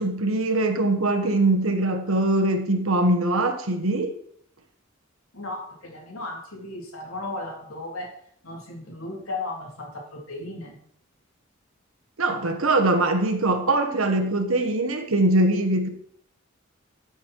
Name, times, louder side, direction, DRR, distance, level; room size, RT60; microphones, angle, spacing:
voice 1, 0.0-4.1 12.2-15.9, right 2 dB, 80° right, 4 dB, 1.4 m, -22 dB
voice 2, 5.3-8.1 8.4-10.8, left 2 dB, 90° left, -1 dB, 3.8 m, -35 dB
14.0 x 6.5 x 4.7 m, 0.67 s
head